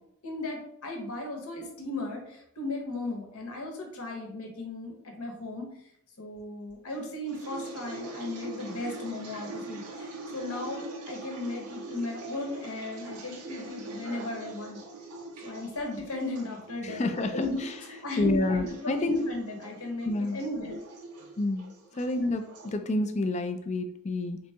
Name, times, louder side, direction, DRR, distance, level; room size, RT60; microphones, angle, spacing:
voice 1, 0.2-5.7 6.2-14.8 15.4-17.6 17.9-20.8, left 2 dB, 75° left, 2 dB, 1.0 m, -36 dB
sound 1, 7.0-22.7, right 2 dB, 90° right, 0.7 m, -43 dB
voice 2, 16.8-17.8 18.2-19.2 20.1-20.4 21.4-21.7 21.9-24.4, left 2 dB, 30° left, 7 dB, 0.4 m, -29 dB
3.9 x 2.8 x 3.4 m, 0.73 s
head